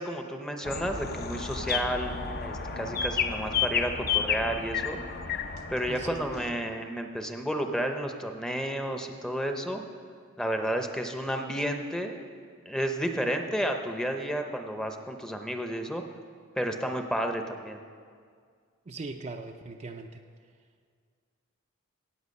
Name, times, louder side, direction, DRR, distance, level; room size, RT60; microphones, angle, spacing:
voice 1, 0.0-2.1 2.4-5.0 5.7-9.8 10.4-12.2 12.7-16.0 16.6-17.8, equal, 5° left, 5 dB, 0.7 m, -31 dB
sound 1, 0.6-6.5, left 6 dB, 45° left, 0.7 m, -31 dB
voice 2, 18.9-20.2, right 3 dB, 30° right, 4 dB, 0.5 m, -39 dB
16.5 x 8.4 x 5.3 m, 2.1 s
head